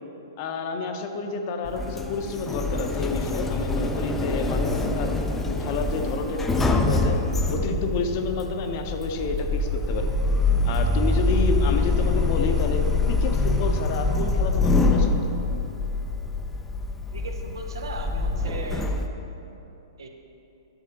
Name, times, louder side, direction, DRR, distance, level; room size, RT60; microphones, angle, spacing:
voice 1, 0.4-5.2 5.5-7.2 7.5-10.2 10.6-15.3, left 4 dB, 45° left, 5 dB, 0.7 m, -30 dB
Sliding door, 1.6-19.1, left 2 dB, 10° left, 0.4 m, -25 dB
voice 2, 17.1-18.9 20.0-20.1, right 3 dB, 70° right, 3 dB, 0.8 m, -37 dB
11.5 x 6.5 x 3.0 m, 2.9 s
figure-of-eight pair, 115°, 2 cm